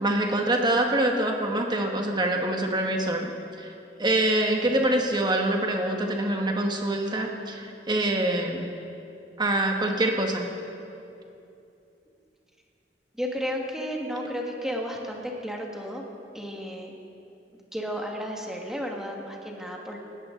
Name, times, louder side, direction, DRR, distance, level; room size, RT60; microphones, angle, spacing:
voice 1, 0.0-3.3 3.6-3.7 4.0-8.7 9.4-10.5, right 1 dB, 25° right, 2 dB, 1.5 m, -25 dB
voice 2, 13.1-16.0 16.3-16.9 17.7-20.0, equal, 5° right, -1 dB, 1.7 m, -33 dB
19.5 x 16.5 x 3.9 m, 2.7 s
head